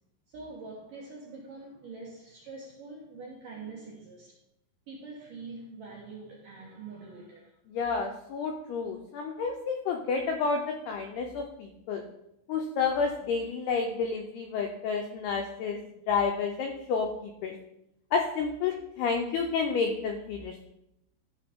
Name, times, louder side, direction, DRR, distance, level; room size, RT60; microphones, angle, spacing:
voice 1, 0.3-4.4 4.9-7.4, right 3 dB, 70° right, -4 dB, 2.1 m, -44 dB
voice 2, 7.7-12.0 12.5-15.8 16.1-17.5 18.1-20.7, left 5 dB, 85° left, 2 dB, 2.3 m, -30 dB
13.5 x 4.9 x 3.6 m, 0.82 s
omnidirectional pair, 5.5 m